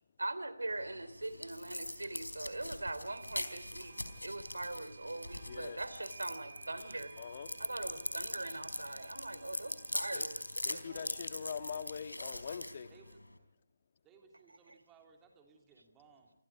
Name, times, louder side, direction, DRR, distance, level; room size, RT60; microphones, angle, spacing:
voice 1, 0.2-3.9 4.2-7.1 7.6-10.4 10.7-11.1 14.7-14.8, right 2 dB, 75° right, 13 dB, 3.2 m, -41 dB
sound 1, 0.7-13.4, left 1 dB, 85° left, 4.1 m, -42 dB
sound 2, 2.0-2.1 3.1-13.2, right 5 dB, 40° right, 3.9 m, -57 dB
voice 2, 5.5-5.8 7.2-7.5 10.1-10.3 10.6-12.9, left 6 dB, 40° left, 10 dB, 1.7 m, -43 dB
voice 3, 14.0-16.3, right 5 dB, 10° right, 3 dB, 3.3 m, -62 dB
27.5 x 27.5 x 4.9 m, 0.78 s
figure-of-eight pair, 150°, 0 cm